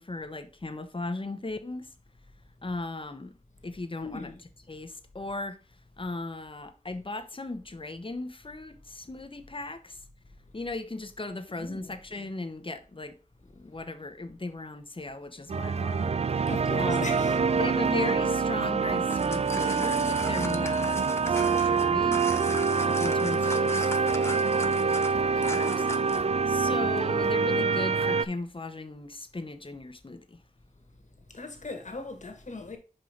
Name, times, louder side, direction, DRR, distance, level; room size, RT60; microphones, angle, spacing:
voice 1, 0.0-1.9 2.6-3.4 3.6-4.3 4.7-5.6 6.0-10.0 10.5-13.2 13.4-16.5 16.8-17.2 17.5-22.3 22.8-24.9 25.3-25.9 26.5-30.4, left 2 dB, 40° left, 1.1 m, -37 dB
voice 2, 4.0-4.4 11.6-12.0 16.5-17.6 31.3-32.8, left 3 dB, 60° left, 1.9 m, -39 dB
sound 1, 15.5-28.3, right 5 dB, 50° right, 0.4 m, -26 dB
sound 2, 18.9-26.3, left 1 dB, 20° left, 1.0 m, -40 dB
5.5 x 5.3 x 3.9 m
cardioid pair, 45°, 14 cm